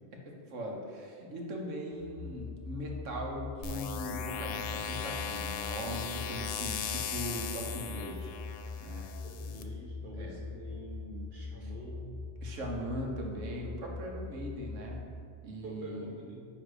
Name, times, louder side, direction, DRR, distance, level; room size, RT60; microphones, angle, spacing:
voice 1, 0.2-8.3 8.8-9.1 10.1-10.4 11.6-11.7 12.4-15.0 15.4-16.2, equal, 85° right, 0 dB, 1.4 m, -40 dB
sound 1, 1.9-15.0, left 4 dB, 5° left, 1.2 m, -43 dB
sound 2, 3.6-9.6, left 7 dB, 85° left, 0.9 m, -38 dB
voice 2, 9.2-12.0 15.6-16.4, right 1 dB, 45° right, -2 dB, 1.3 m, -46 dB
9.6 x 3.2 x 4.8 m, 2.3 s
omnidirectional pair, 1.3 m